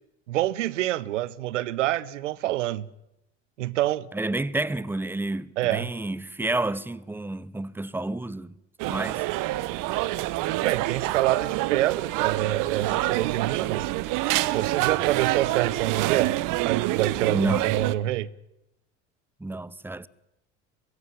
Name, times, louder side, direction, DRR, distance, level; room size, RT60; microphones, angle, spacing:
voice 1, 0.3-2.9 3.6-4.1 5.6-5.9 10.6-13.9 14.5-16.4 16.6-18.3, right 14 dB, 85° right, 0.9 m, -27 dB
voice 2, 4.1-8.6 8.9-9.2 17.3-17.7 19.4-20.1, right 2 dB, 5° right, 0.8 m, -30 dB
sound 1, 8.8-17.9, right 17 dB, 60° right, 1.1 m, -27 dB
23.0 x 15.5 x 9.9 m
hypercardioid pair, 80°, 36 cm